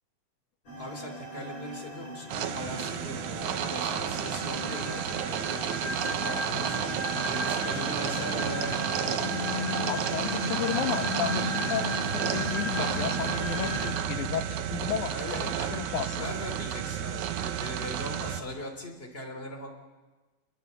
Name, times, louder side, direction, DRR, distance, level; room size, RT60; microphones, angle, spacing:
sound 1, 0.7-13.9, left 1 dB, 65° left, 8.7 m, -35 dB
voice 1, 0.8-6.8 7.3-9.4 15.1-15.8 16.1-19.7, left 1 dB, 20° left, 3 dB, 3.1 m, -40 dB
sound 2, 2.3-18.4, right 9 dB, 75° right, 2.4 m, -32 dB
Acoustic guitar, 6.7-14.7, equal, 35° left, 4.7 m, -48 dB
voice 2, 9.9-16.3, left 10 dB, 80° left, 9 dB, 2.5 m, -34 dB
27.0 x 21.5 x 6.8 m, 1.3 s
omnidirectional pair, 3.5 m